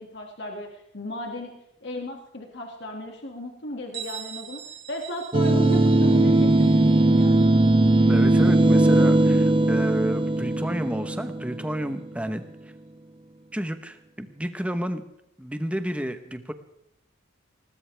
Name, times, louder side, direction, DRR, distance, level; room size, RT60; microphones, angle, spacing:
voice 1, 0.0-1.5 1.8-4.6 4.9-7.6, left 1 dB, 55° left, 1 dB, 2.3 m, -35 dB
Bell, 3.9-9.4, right 9 dB, 55° right, 2.7 m, -43 dB
sound 1, 5.3-11.9, right 2 dB, 25° right, 0.7 m, -19 dB
voice 2, 8.1-12.4 13.5-15.0 15.4-16.5, equal, 5° right, 8 dB, 1.1 m, -31 dB
20.0 x 19.5 x 3.5 m, 0.78 s
head